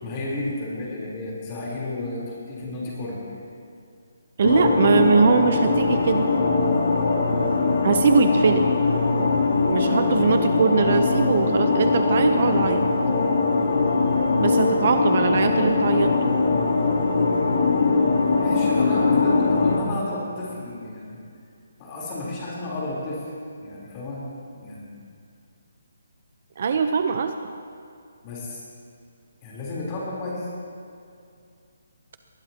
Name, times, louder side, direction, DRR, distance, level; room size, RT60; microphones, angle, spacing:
voice 1, 0.0-3.2 18.2-21.2 21.8-23.2 23.6-24.3 24.6-25.0 28.2-28.6 29.4-30.5, left 2 dB, 20° left, -5 dB, 3.8 m, -32 dB
sound 1, 4.4-19.8, left 4 dB, 70° left, 3.0 m, -21 dB
voice 2, 4.4-6.2 7.8-8.6 9.7-12.8 14.4-16.1 26.6-27.5, right 5 dB, 40° right, 7 dB, 0.7 m, -21 dB
21.5 x 20.0 x 2.9 m, 2.4 s
hypercardioid pair, 175°, 0 cm